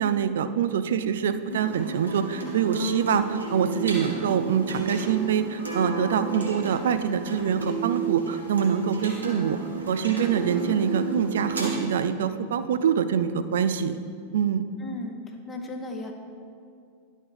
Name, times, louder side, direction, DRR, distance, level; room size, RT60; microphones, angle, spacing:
voice 1, 0.0-9.6 9.9-14.0 14.3-14.6, right 8 dB, 60° right, 11 dB, 0.4 m, -25 dB
sound 1, 1.5-11.7, right 3 dB, 75° right, 1.4 m, -32 dB
voice 2, 14.8-16.1, left 2 dB, 20° left, 3 dB, 0.9 m, -36 dB
11.0 x 6.3 x 3.4 m, 2.4 s
figure-of-eight pair, 90°, 0 cm